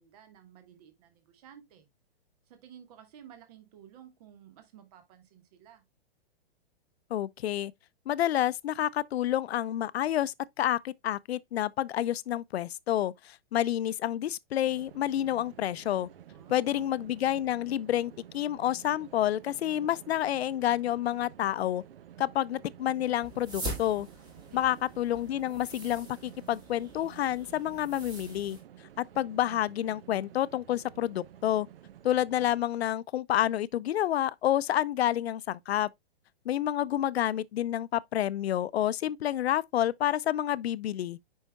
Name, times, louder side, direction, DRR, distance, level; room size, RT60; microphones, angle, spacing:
voice 1, 0.0-1.9 2.5-5.8 16.3-16.9 24.5-24.8, right 9 dB, 40° right, 1.4 m, -54 dB
voice 2, 7.1-7.7 8.1-16.1 16.5-21.8 22.2-24.1 24.5-28.6 29.0-31.7 32.0-35.9 36.5-41.2, left 12 dB, 85° left, 0.5 m, -29 dB
sound 1, 14.6-32.6, right 11 dB, 65° right, 0.7 m, -52 dB
sound 2, 23.2-28.6, right 1 dB, 15° right, 1.9 m, -43 dB
8.1 x 5.6 x 2.2 m
hypercardioid pair, 165°, 31 cm